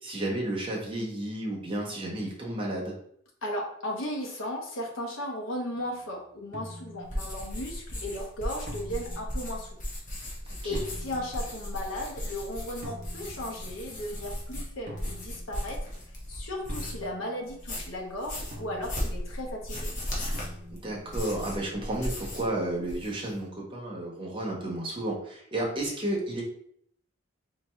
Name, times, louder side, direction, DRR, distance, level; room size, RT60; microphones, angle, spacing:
voice 1, 0.0-2.9 10.5-10.8 20.7-26.4, right 1 dB, 25° right, -3 dB, 1.0 m, -32 dB
voice 2, 3.4-9.7 10.6-15.8 16.3-19.9, left 1 dB, 70° left, -1 dB, 1.1 m, -36 dB
sound 1, 5.8-6.1 6.5-7.4 8.7-9.7 10.7-11.5 12.8-14.1 14.9-16.0 16.7-17.9 18.5-19.5 20.3-21.1, equal, 40° right, 0.7 m, -45 dB
sound 2, 7.0-17.1 17.5-22.5 22.8-23.3, equal, 40° left, 1.0 m, -36 dB
4.3 x 2.8 x 3.1 m, 0.68 s
head